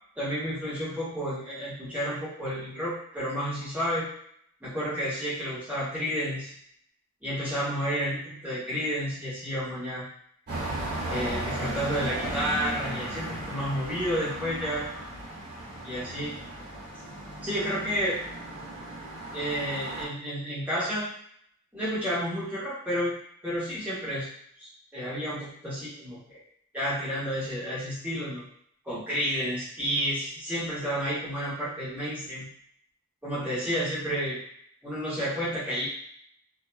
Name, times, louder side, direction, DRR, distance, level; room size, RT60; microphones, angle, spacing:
voice 1, 0.2-4.1 4.6-6.5 7.2-10.1 11.1-14.9 15.8-16.4 17.4-18.2 19.3-21.1 21.7-23.1 23.4-24.3 24.6-26.4 26.7-28.5 28.8-32.5 33.2-34.4 34.8-35.9, equal, 5° right, -10 dB, 1.1 m, -31 dB
sound 1, 10.5-20.1, right 1 dB, 50° right, 1.3 m, -36 dB
2.7 x 2.7 x 2.2 m, 0.66 s
head